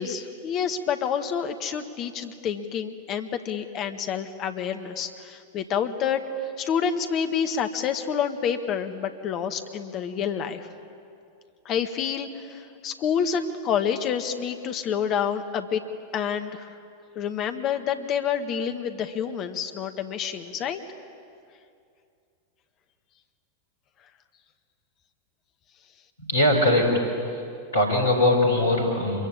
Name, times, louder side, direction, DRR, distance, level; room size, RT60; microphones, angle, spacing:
voice 1, 0.0-10.7 11.6-15.8 16.1-16.7 17.1-20.8, left 7 dB, 35° left, 7 dB, 1.7 m, -28 dB
voice 2, 26.3-27.0 27.7-29.3, left 1 dB, 75° left, 3 dB, 5.1 m, -21 dB
25.5 x 23.0 x 8.7 m, 2.4 s
figure-of-eight pair, 90°, 0 cm